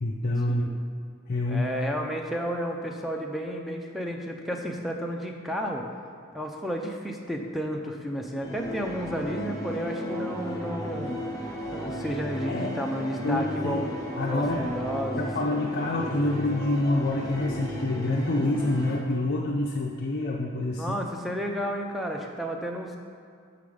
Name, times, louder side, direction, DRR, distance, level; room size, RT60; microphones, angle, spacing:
voice 1, 0.0-0.7 1.3-1.8 12.4-12.7 13.2-13.8 14.2-14.7 15.1-20.8, left 2 dB, 50° left, -2 dB, 0.5 m, -27 dB
voice 2, 1.5-5.9 6.3-11.2 11.7-15.3 20.7-23.0, equal, ahead, 1 dB, 0.5 m, -32 dB
sound 1, 8.4-19.0, equal, 15° left, 0.9 m, -35 dB
sound 2, 10.1-17.7, right 1 dB, 75° right, 1.6 m, -44 dB
6.8 x 5.5 x 4.9 m, 2.3 s
head